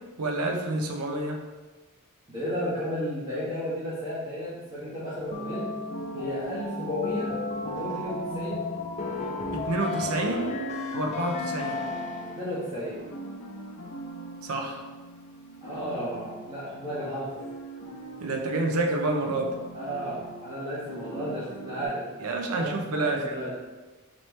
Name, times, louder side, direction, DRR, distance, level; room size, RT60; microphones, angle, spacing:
voice 1, 0.2-1.4 9.5-10.6 10.9-11.8 14.4-14.9 18.2-19.5 22.2-23.3, right 2 dB, 90° right, 2 dB, 0.6 m, -28 dB
voice 2, 2.3-5.7 6.1-7.3 7.7-8.6 12.3-13.1 15.6-17.4 19.7-22.1 22.5-23.5, equal, 25° right, -13 dB, 1.3 m, -33 dB
sound 1, 5.3-12.6, left 3 dB, 30° left, 0.3 m, -33 dB
sound 2, 5.9-21.9, right 1 dB, 80° left, 0.7 m, -44 dB
4.3 x 3.0 x 3.1 m, 1.3 s
head